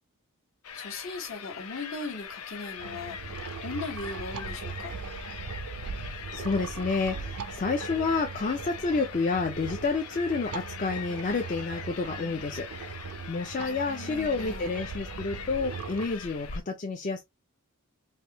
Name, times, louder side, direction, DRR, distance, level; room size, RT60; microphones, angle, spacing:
sound 1, 0.6-16.6, left 6 dB, 85° left, 0.6 m, -42 dB
voice 1, 0.7-3.3 3.6-5.0 13.6-14.9, left 3 dB, 60° left, 1.1 m, -39 dB
sound 2, 2.8-16.1, right 5 dB, 80° right, 0.4 m, -40 dB
voice 2, 5.9-17.2, left 4 dB, 35° left, 0.4 m, -30 dB
3.4 x 2.6 x 2.9 m
head